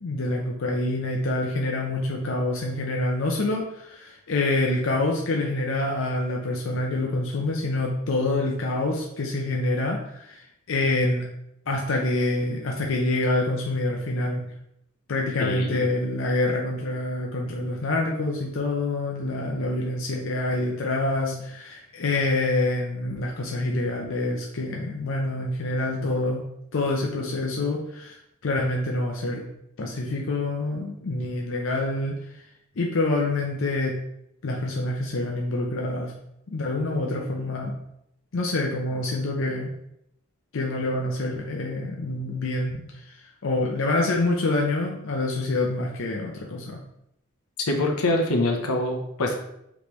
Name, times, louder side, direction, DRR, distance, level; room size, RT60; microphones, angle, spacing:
voice 1, 0.0-11.3 11.7-14.5 15.1-26.4 26.7-28.2 28.4-29.4 29.8-32.2 32.8-34.0 34.4-36.1 36.5-37.7 38.3-39.7 40.5-46.8, left 2 dB, 60° left, 0 dB, 0.6 m, -26 dB
voice 2, 15.4-15.9 47.7-49.4, left 2 dB, 85° left, 2 dB, 0.8 m, -24 dB
5.2 x 3.2 x 3.1 m, 0.77 s
head